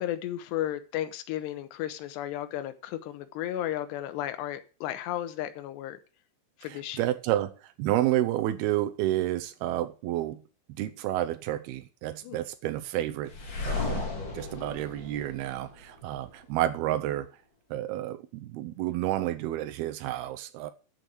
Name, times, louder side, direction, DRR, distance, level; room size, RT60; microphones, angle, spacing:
voice 1, 0.0-6.0 6.6-7.1 12.2-12.4, left 12 dB, 70° left, 3.0 m, -34 dB
voice 2, 6.7-10.4 10.8-13.3 13.7-17.3 17.7-20.7, right 13 dB, 85° right, 2.2 m, -30 dB
sound 1, 13.3-16.2, left 3 dB, 30° left, 2.4 m, -35 dB
9.5 x 7.1 x 8.3 m
omnidirectional pair, 5.5 m